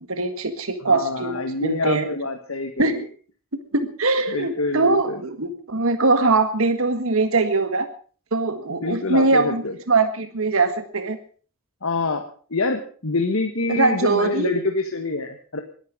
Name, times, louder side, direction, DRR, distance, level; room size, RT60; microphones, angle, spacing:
voice 1, 0.1-2.1 2.8-3.0 3.7-7.9 8.3-9.6 9.9-11.2 13.7-14.5, right 3 dB, 75° right, 8 dB, 1.7 m, -21 dB
voice 2, 0.8-3.1 4.3-5.2 8.8-9.8 11.8-15.6, left 3 dB, 75° left, 4 dB, 1.6 m, -26 dB
21.0 x 12.0 x 5.1 m, 0.42 s
head